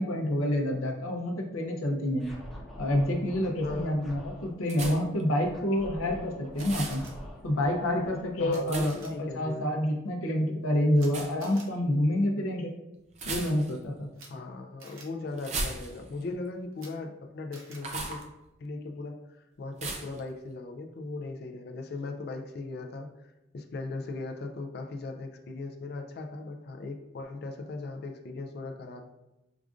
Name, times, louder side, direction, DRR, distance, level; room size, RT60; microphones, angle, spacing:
voice 1, 0.0-2.3 2.8-7.0 7.4-12.7 13.3-14.1, left 1 dB, 85° left, 1 dB, 0.6 m, -28 dB
Scratching (performance technique), 2.1-4.5 5.4-9.7, equal, ahead, 0.7 m, -46 dB
voice 2, 3.6-3.9 8.4-9.7 14.3-18.2 18.6-23.3 23.5-29.1, left 3 dB, 50° left, 4 dB, 0.3 m, -38 dB
sound 1, 4.7-5.2 6.6-7.0 8.7-9.1 11.1-11.3 13.1-13.9 15.4-16.2 17.8-18.2 19.8-20.2, right 3 dB, 35° right, 0.4 m, -36 dB
Camera, 6.5-7.1 8.5-8.6 8.9-9.1 11.0-11.1 11.4-11.7 14.1-14.3 14.8-15.0 16.7-16.9 17.5-17.8, right 3 dB, 80° right, 0.7 m, -49 dB
4.8 x 2.4 x 2.4 m, 0.94 s
head